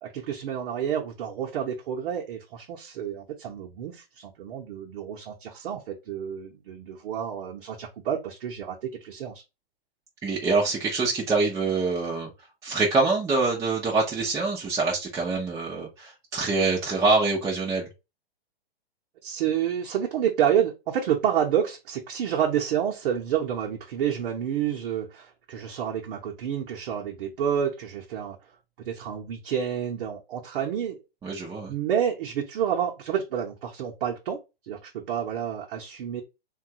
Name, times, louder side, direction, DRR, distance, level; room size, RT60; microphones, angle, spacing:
voice 1, 0.0-9.4 19.2-28.4 28.8-31.0 31.7-34.4 34.7-36.2, right 9 dB, 60° right, 0.9 m, -29 dB
voice 2, 10.2-12.3 12.6-17.9 31.2-31.7, right 3 dB, 10° right, 0.6 m, -25 dB
3.1 x 2.4 x 2.8 m
hypercardioid pair, 140°, 30 cm